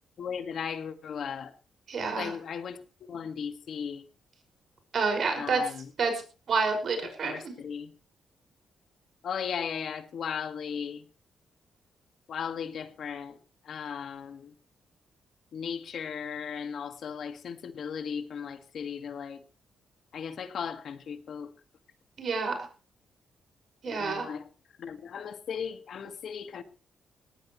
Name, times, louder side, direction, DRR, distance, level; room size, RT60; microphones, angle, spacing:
voice 1, 0.2-1.5 2.1-4.0 5.3-5.8 7.2-7.9 9.2-11.1 12.3-13.4 13.6-14.5 15.5-19.4 20.1-21.5 23.9-24.5 24.8-26.6, left 7 dB, 65° left, 1.8 m, -36 dB
voice 2, 1.9-2.3 4.9-5.7 6.0-6.2 6.5-7.5 22.2-22.7 23.8-24.3, right 4 dB, 55° right, 5.5 m, -29 dB
19.0 x 17.5 x 3.1 m
cardioid pair, 115°, 0 cm